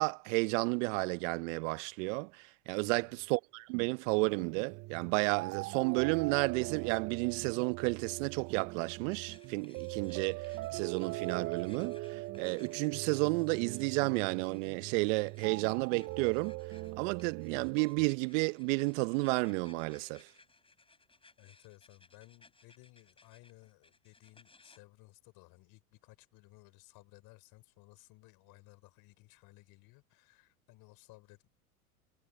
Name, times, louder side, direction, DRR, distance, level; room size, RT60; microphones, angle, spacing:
voice 1, 0.0-16.6 17.0-20.3, right 29 dB, 55° right, 0.8 m, -32 dB
voice 2, 2.8-3.3 21.4-31.5, left 21 dB, 50° left, 3.8 m, -59 dB
sound 1, 4.1-18.1, right 21 dB, 35° right, 0.5 m, -41 dB
sound 2, 9.1-24.8, left 3 dB, 10° left, 6.6 m, -64 dB
hypercardioid pair, 95°, 44 cm